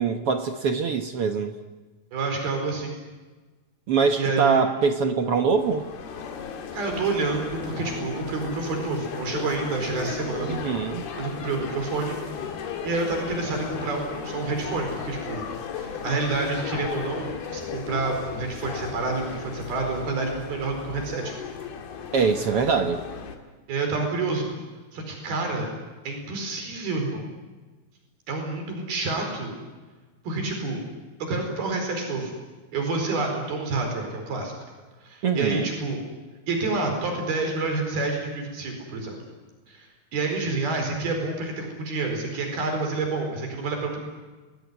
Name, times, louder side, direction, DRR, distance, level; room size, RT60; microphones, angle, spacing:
voice 1, 0.0-1.5 3.9-5.8 10.5-11.1 22.1-23.0 35.2-35.7, right 5 dB, 60° right, 6 dB, 1.5 m, -23 dB
voice 2, 2.1-2.9 4.2-4.6 6.7-10.5 11.2-12.2 12.8-15.5 15.7-21.4 23.7-24.5 24.9-25.7 26.0-27.3 28.3-29.5 30.2-30.8 31.2-32.4 32.7-34.5 35.0-36.0 36.5-39.2 39.7-39.9 40.1-44.0, right 3 dB, 80° right, 3 dB, 6.5 m, -28 dB
sound 1, 5.6-23.4, left 6 dB, 90° left, 4.3 m, -35 dB
30.0 x 20.5 x 9.7 m, 1.3 s
omnidirectional pair, 4.3 m